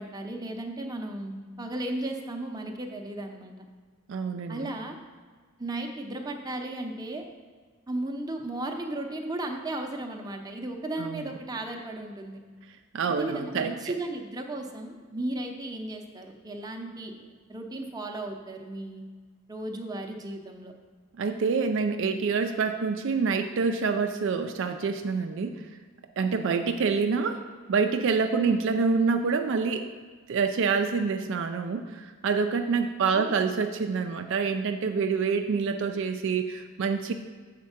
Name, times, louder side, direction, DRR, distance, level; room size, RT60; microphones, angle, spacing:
voice 1, 0.0-3.7 4.5-5.0 5.6-7.2 7.9-12.4 13.1-17.1 17.5-19.0 19.5-20.7 28.4-28.6 33.1-33.5, right 1 dB, 20° right, 2 dB, 0.7 m, -35 dB
voice 2, 4.1-4.7 11.0-11.2 12.9-13.7 21.2-25.6 26.2-27.4 27.7-29.9 30.3-37.1, right 5 dB, 60° right, 6 dB, 0.4 m, -26 dB
7.4 x 4.4 x 5.7 m, 1.5 s
head